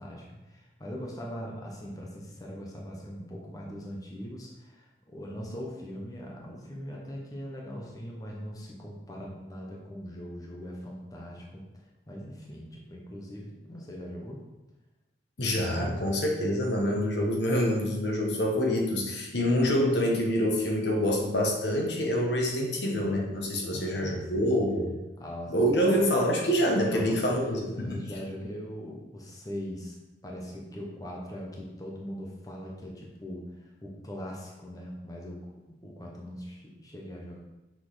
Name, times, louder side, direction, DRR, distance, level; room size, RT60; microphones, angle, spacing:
voice 1, 0.0-11.6 12.1-14.4 23.6-24.6 25.2-25.8 26.9-30.0 30.2-37.4, equal, 20° left, -2 dB, 0.9 m, -41 dB
voice 2, 15.4-24.9 25.5-27.4 27.8-28.0, equal, 75° left, -1 dB, 1.4 m, -26 dB
6.3 x 4.0 x 4.9 m, 1.0 s
head